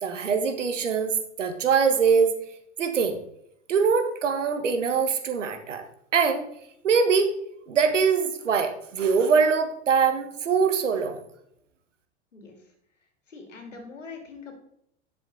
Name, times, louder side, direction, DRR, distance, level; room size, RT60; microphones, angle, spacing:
voice 1, 0.0-2.4 2.8-3.2 3.7-5.8 6.1-6.4 6.8-7.3 7.7-11.2, right 5 dB, 85° right, 8 dB, 1.6 m, -23 dB
voice 2, 13.3-14.5, left 4 dB, 90° left, 4 dB, 2.5 m, -42 dB
10.5 x 6.7 x 4.0 m, 0.73 s
hypercardioid pair, 95°, 36 cm